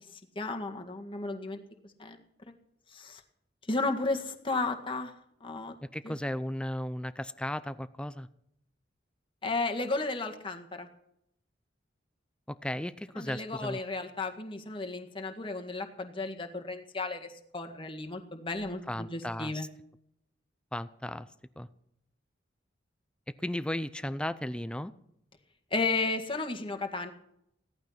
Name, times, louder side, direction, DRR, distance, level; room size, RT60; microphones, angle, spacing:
voice 1, 0.4-1.6 2.0-2.2 2.9-3.2 3.7-5.1 5.4-5.8 6.0-6.1 9.4-10.9 13.2-19.7 25.7-27.1, left 3 dB, 30° left, 4 dB, 1.9 m, -33 dB
voice 2, 5.9-8.3 12.5-13.8 18.9-19.7 20.7-21.3 21.6-21.7 23.4-24.9, left 1 dB, 5° left, 14 dB, 0.5 m, -35 dB
17.0 x 12.0 x 5.8 m, 0.74 s
head